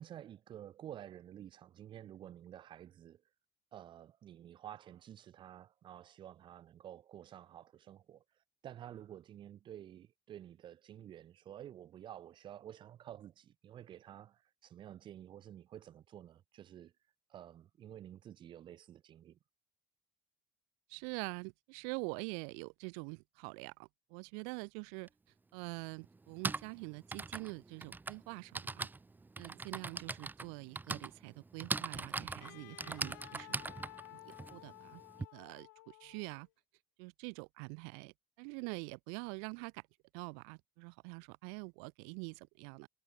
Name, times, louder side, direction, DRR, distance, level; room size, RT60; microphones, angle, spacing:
voice 1, 0.0-3.2 3.7-16.9 17.3-19.4, right 11 dB, 55° right, 1.0 m, -51 dB
voice 2, 20.9-25.1 25.5-28.9 29.4-33.9 34.1-36.5 37.0-39.8 40.1-42.9, right 40 dB or more, 75° right, 0.5 m, -45 dB
Typing, 25.1-25.2 26.1-35.3, right 3 dB, 20° right, 0.8 m, -41 dB
Wind instrument woodwind instrument, 32.4-36.5, left 20 dB, 85° left, 2.4 m, -54 dB
hypercardioid pair, 60°, 10 cm